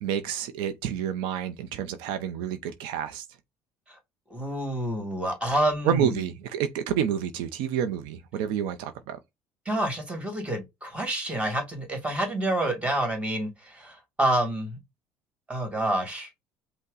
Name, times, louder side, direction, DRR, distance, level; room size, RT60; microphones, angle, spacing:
voice 1, 0.0-3.2 5.8-9.2, right 9 dB, 80° right, 0.6 m, -29 dB
voice 2, 4.3-6.2 9.7-14.8 15.5-16.3, right 1 dB, 15° right, 2.1 m, -28 dB
5.4 x 2.2 x 3.8 m
supercardioid pair, 100°, 8 cm